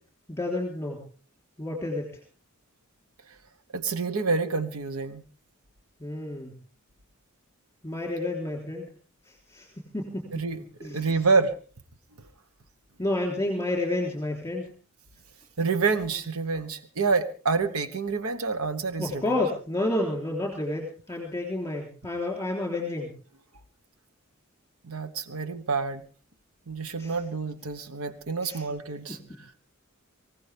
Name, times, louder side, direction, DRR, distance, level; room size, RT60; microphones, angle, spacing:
voice 1, 0.3-1.0 1.6-2.1 6.0-6.5 7.8-8.9 9.2-10.2 10.8-11.2 13.0-14.6 19.0-23.1 27.0-27.2 28.4-28.6 29.1-29.2, left 2 dB, 15° left, 0 dB, 3.6 m, -30 dB
voice 2, 3.7-5.2 10.3-11.5 15.6-19.3 24.8-26.0 26.7-29.2, right 4 dB, 85° right, 10 dB, 1.2 m, -28 dB
24.0 x 16.5 x 3.5 m, 0.40 s
head